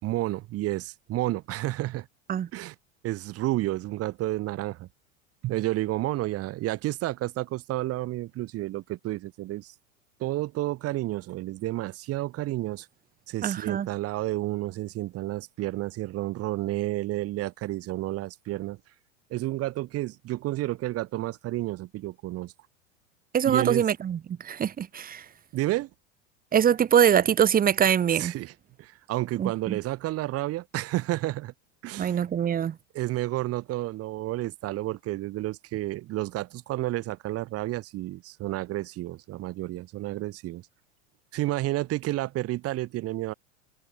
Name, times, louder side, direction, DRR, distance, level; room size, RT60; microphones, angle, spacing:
voice 1, 0.0-2.1 2.5-2.7 3.0-4.9 5.4-9.7 10.2-12.9 13.3-18.8 19.3-22.5 23.4-23.8 25.5-25.9 28.2-28.5 28.8-31.5 31.8-32.2 32.9-40.6 41.3-43.3, right 16 dB, 45° right, 3.2 m, -31 dB
voice 2, 13.4-13.9 23.3-25.3 26.5-28.3 29.4-29.8 32.0-32.8, right 8 dB, 25° right, 1.8 m, -23 dB
open air
hypercardioid pair, 110°, 34 cm